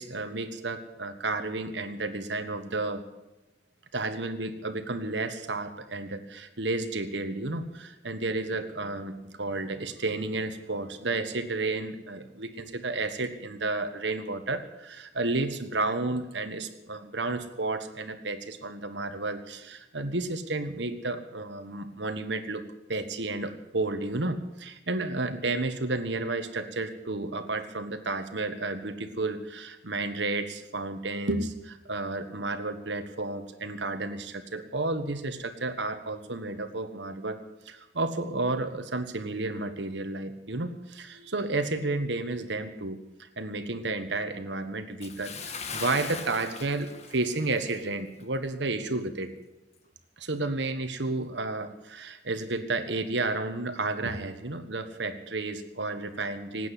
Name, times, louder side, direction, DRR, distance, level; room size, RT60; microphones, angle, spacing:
voice 1, 0.0-3.0 3.9-22.6 22.9-37.4 37.7-43.0 43.4-45.3 45.7-49.3 50.2-56.7, right 2 dB, 75° right, 9 dB, 1.5 m, -32 dB
Bathtub (filling or washing) / Splash splatter, 45.0-47.9 48.2-48.4 48.9-49.0, left 5 dB, 40° left, 1.5 m, -40 dB
18.5 x 9.3 x 8.3 m, 1.0 s
head